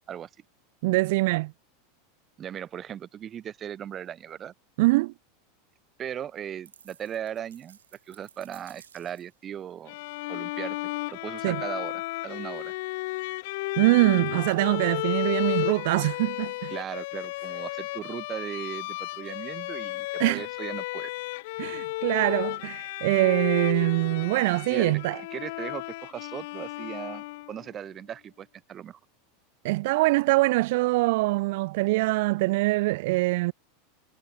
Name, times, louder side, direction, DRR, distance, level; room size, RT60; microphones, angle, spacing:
voice 1, 0.8-1.5 4.8-5.1 11.4-11.6 13.8-16.7 20.2-20.4 21.6-25.2 29.6-33.5, right 22 dB, 60° right, 0.4 m, -23 dB
voice 2, 2.4-4.5 6.0-7.8 8.1-10.0 10.3-10.8 11.1-12.7 16.7-21.1 24.7-24.9 25.3-29.0, right 9 dB, 35° right, 3.2 m, -38 dB
sound 1, 6.7-9.4, right 8 dB, 80° right, 6.9 m, -55 dB
Bowed string instrument, 9.9-27.7, left 21 dB, 60° left, 1.2 m, -33 dB
hypercardioid pair, 90°, 0 cm